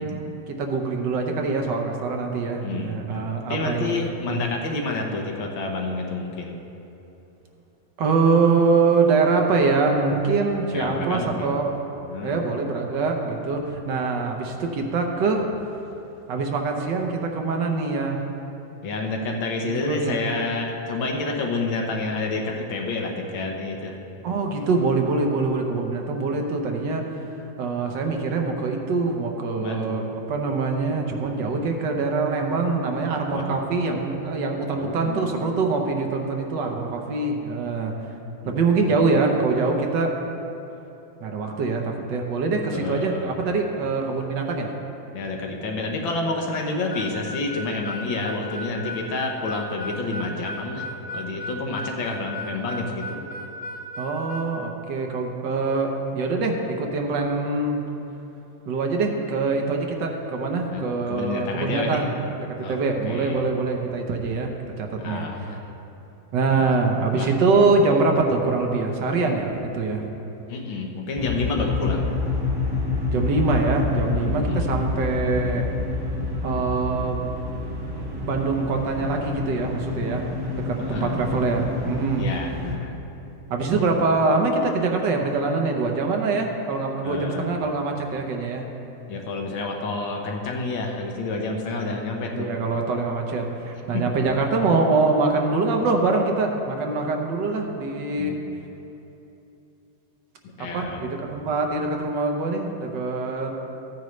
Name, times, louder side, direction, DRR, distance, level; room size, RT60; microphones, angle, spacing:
voice 1, 0.0-3.9 4.3-4.4 8.0-11.7 12.2-15.5 16.3-18.2 19.6-20.2 24.2-27.1 27.6-30.0 30.3-37.9 38.4-40.1 41.2-44.7 54.0-57.8 58.7-62.1 62.3-64.5 64.8-65.3 66.3-70.0 73.1-75.7 76.4-77.3 78.2-80.2 80.6-82.3 83.5-88.6 92.3-98.4 100.7-103.6, right 3 dB, 70° right, 2 dB, 1.6 m, -24 dB
voice 2, 2.6-6.5 10.7-11.6 12.1-12.4 18.8-24.0 29.6-30.0 33.3-33.5 34.8-35.4 38.4-39.0 42.7-43.4 45.1-50.8 51.1-53.2 60.7-62.1 62.6-62.8 63.1-63.5 65.0-65.8 66.5-66.7 67.1-67.3 70.5-72.1 74.2-74.7 80.8-81.2 82.2-83.0 87.0-87.5 89.1-92.5 93.9-94.2 98.2-98.3 100.6-101.1, left 3 dB, 80° left, 1 dB, 1.8 m, -29 dB
Harmonica, 46.9-54.5, left 1 dB, 45° left, 0.7 m, -35 dB
sound 1, 71.2-82.8, left 3 dB, 20° right, 0.7 m, -28 dB
15.0 x 9.1 x 3.2 m, 3.0 s
omnidirectional pair, 2.1 m